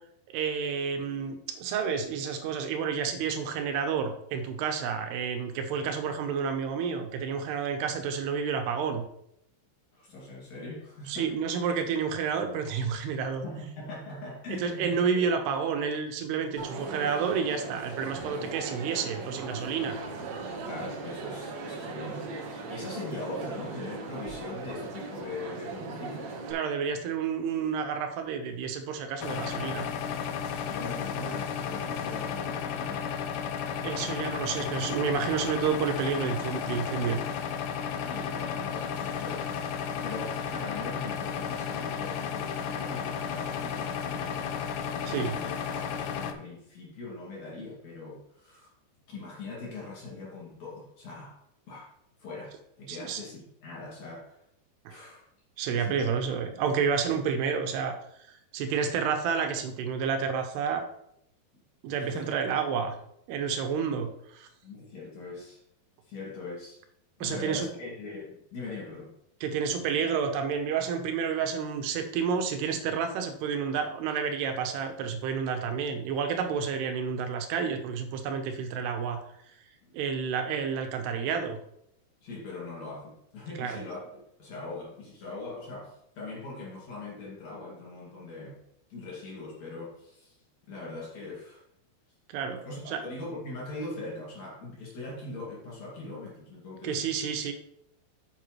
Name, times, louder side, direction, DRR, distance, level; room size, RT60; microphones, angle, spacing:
voice 1, 0.3-9.0 11.1-13.4 14.5-20.0 26.5-29.9 33.8-37.2 45.1-45.3 52.9-53.2 54.9-55.0 55.6-58.0 58.5-60.9 61.8-63.0 63.3-64.5 67.2-67.7 69.4-79.2 79.9-81.6 83.6-83.8 92.3-93.0 96.8-97.5, right 6 dB, 85° right, 6 dB, 2.9 m, -30 dB
voice 2, 9.9-11.3 13.4-15.3 20.7-26.3 30.4-33.3 37.9-44.4 44.9-48.7 49.1-51.4 51.7-51.9 52.2-54.4 54.9-55.3 55.7-56.1 61.5-61.6 62.0-62.5 64.6-65.6 66.1-66.8 67.2-69.1 79.8-80.1 82.2-88.6 88.9-90.4 90.7-91.6 92.7-97.0, left 3 dB, 50° left, -4 dB, 3.2 m, -41 dB
Crowd, 16.6-26.5, right 3 dB, 65° right, 1.8 m, -38 dB
sound 1, 29.2-46.3, left 7 dB, 90° left, 1.8 m, -33 dB
8.9 x 7.7 x 3.1 m, 0.74 s
omnidirectional pair, 4.6 m